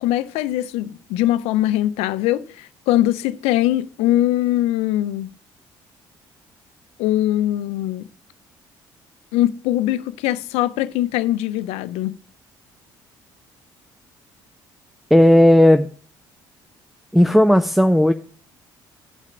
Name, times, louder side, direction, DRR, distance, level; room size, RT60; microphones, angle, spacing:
voice 1, 0.0-5.3 7.0-8.0 9.3-12.2, left 14 dB, 80° left, 0.5 m, -21 dB
voice 2, 15.1-15.9 17.1-18.1, left 1 dB, ahead, 0.6 m, -13 dB
9.1 x 5.9 x 5.8 m
hypercardioid pair, 60°, 11 cm